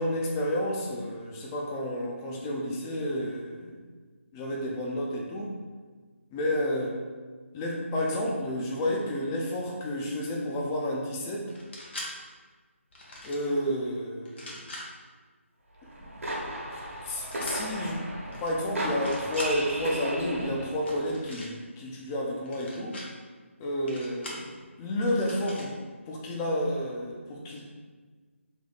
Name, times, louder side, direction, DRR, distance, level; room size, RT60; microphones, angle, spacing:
voice 1, 0.0-3.8 4.3-5.5 6.3-7.0 7.5-11.5 13.2-14.6 16.0-16.1 17.0-23.0 23.6-24.5 24.8-25.8 26.1-27.6, left 1 dB, 10° left, -1 dB, 0.3 m, -31 dB
sound 1, 11.5-12.1 12.9-13.5 14.2-14.8 17.3-17.6 18.3-18.5 18.9-19.5 20.8-21.5 22.5-23.1 23.9-24.4 25.2-25.7, left 1 dB, 50° left, 1.0 m, -42 dB
sound 2, 15.8-20.9, right 1 dB, 75° right, 1.1 m, -35 dB
3.3 x 2.6 x 4.0 m, 1.5 s
figure-of-eight pair, 160°, 7 cm